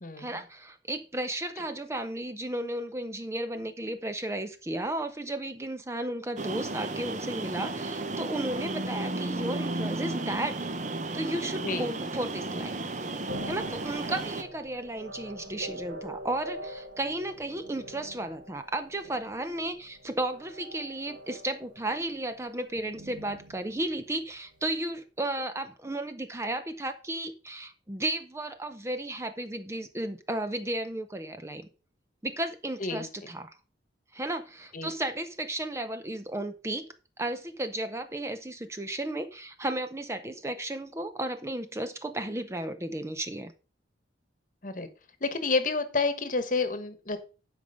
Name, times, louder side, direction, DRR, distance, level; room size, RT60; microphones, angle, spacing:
voice 1, 0.2-10.6 11.1-12.8 13.4-31.7 32.2-33.6 34.1-36.9 37.2-43.5, right 1 dB, 15° right, 9 dB, 0.6 m, -34 dB
sound 1, 6.4-14.4, right 2 dB, 40° right, 0.9 m, -34 dB
sound 2, 13.3-24.7, right 1 dB, 80° right, 1.6 m, -45 dB
voice 2, 45.2-47.2, left 3 dB, 45° left, 10 dB, 1.2 m, -29 dB
11.0 x 5.1 x 5.2 m, 0.35 s
head